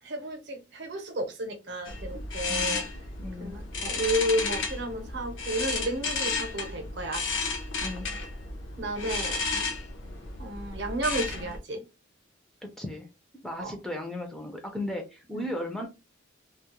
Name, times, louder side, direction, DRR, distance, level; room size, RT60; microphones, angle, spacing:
voice 1, 0.0-2.8 3.4-7.2 8.8-9.7 10.4-11.8 13.6-13.7 15.3-15.5, right 1 dB, 55° right, 5 dB, 0.7 m, -32 dB
sound 1, 1.8-11.6, left 4 dB, 65° left, 0.5 m, -33 dB
voice 2, 2.5-2.8 3.2-3.5 7.8-8.1 12.8-13.1 13.4-15.9, left 1 dB, ahead, 2 dB, 0.4 m, -35 dB
2.2 x 2.0 x 2.9 m, 0.27 s
head